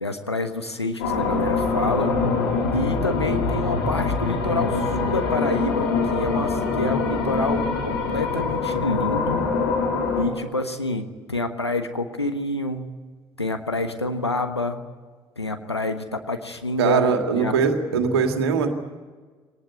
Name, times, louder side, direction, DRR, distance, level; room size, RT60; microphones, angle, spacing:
voice 1, 0.0-2.1 2.7-9.5 10.2-12.9 13.4-14.8 15.4-17.1 17.4-17.5, left 2 dB, 90° left, 7 dB, 1.3 m, -27 dB
sound 1, 1.0-10.2, left 4 dB, 70° left, 3.6 m, -24 dB
voice 2, 16.8-18.7, right 6 dB, 75° right, 6 dB, 2.1 m, -21 dB
23.0 x 19.0 x 9.6 m, 1.5 s
figure-of-eight pair, 50°, 13 cm